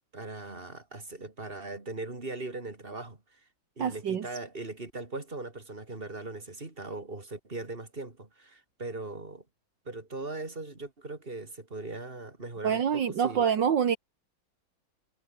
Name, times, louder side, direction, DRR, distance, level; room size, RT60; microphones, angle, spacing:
voice 1, 0.1-3.4 3.8-9.4 9.9-13.5, right 3 dB, 25° right, 3.9 m, -39 dB
voice 2, 3.8-4.2 12.6-14.0, right 8 dB, 70° right, 2.2 m, -26 dB
omnidirectional pair, 2.1 m